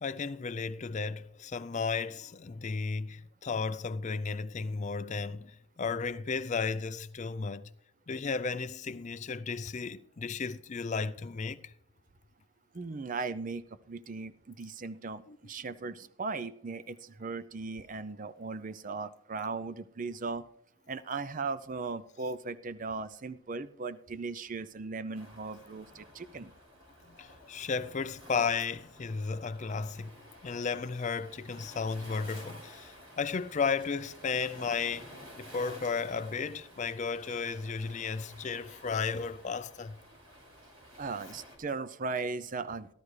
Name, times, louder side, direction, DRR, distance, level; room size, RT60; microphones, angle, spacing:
voice 1, 0.0-7.7 8.1-11.7 15.3-15.4 27.1-30.1 30.4-40.0, left 5 dB, 35° left, 0.4 m, -34 dB
voice 2, 12.7-20.4 20.9-26.5 41.0-42.9, right 4 dB, 35° right, 0.5 m, -38 dB
Waves surf, 25.1-41.6, equal, 75° right, 4.7 m, -52 dB
15.5 x 12.0 x 3.2 m
head